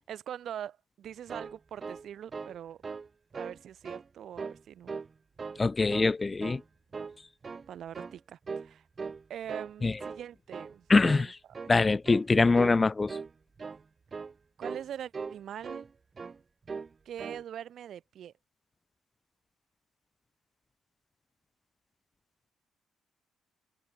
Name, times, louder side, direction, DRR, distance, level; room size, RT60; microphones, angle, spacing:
voice 1, 0.1-2.8 3.3-4.9 7.7-8.8 9.3-10.8 11.1-11.3 14.6-15.8 17.0-18.3, right 10 dB, 65° right, 1.5 m, -42 dB
sound 1, 1.0-2.6 2.8-3.1 3.3-4.0 4.4-5.1 5.4-6.1 6.4-6.6 6.9-7.7 7.9-8.2 8.5-8.7 9.0-9.7 10.0-10.2 10.5-10.8 11.0-11.3 11.5-11.8 12.1-12.3 12.6-12.8 13.1-13.3 13.6-13.8 14.1-14.3 14.6-14.9 15.1-15.9 16.2-16.4 16.7-16.9 17.2-17.4, right 5 dB, 35° right, 1.0 m, -40 dB
voice 2, 5.6-6.6 9.8-10.0 10.9-11.4 11.7-13.2, left 3 dB, 25° left, 0.4 m, -24 dB
cardioid pair, 90°, 0 cm